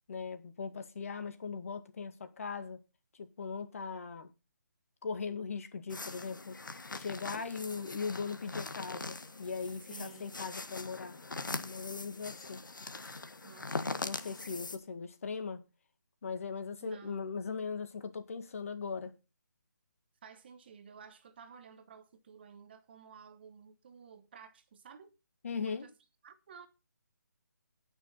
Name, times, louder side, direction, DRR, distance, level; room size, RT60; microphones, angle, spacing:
voice 1, 0.1-2.8 3.1-4.3 5.0-11.2 11.5-12.6 14.0-15.6 16.2-19.1 25.4-25.9, left 5 dB, 45° left, 2.0 m, -39 dB
sound 1, 5.9-14.8, left 3 dB, 90° left, 1.6 m, -42 dB
voice 2, 9.9-10.5 13.4-14.0 16.8-17.2 20.2-25.2 25.5-25.9 26.2-26.7, right 6 dB, 30° right, 1.1 m, -53 dB
18.5 x 6.4 x 4.2 m
hypercardioid pair, 165°, 10 cm